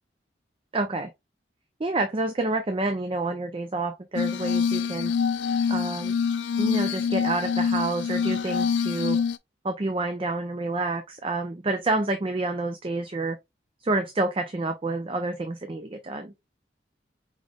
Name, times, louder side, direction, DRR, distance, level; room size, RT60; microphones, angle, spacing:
voice 1, 0.7-1.1 1.8-5.1 5.7-6.1 6.6-9.2 9.6-13.4 13.8-16.3, right 2 dB, 30° right, 0.5 m, -28 dB
Glass, 4.2-9.4, left 6 dB, 80° left, 0.3 m, -25 dB
5.0 x 3.5 x 2.3 m
head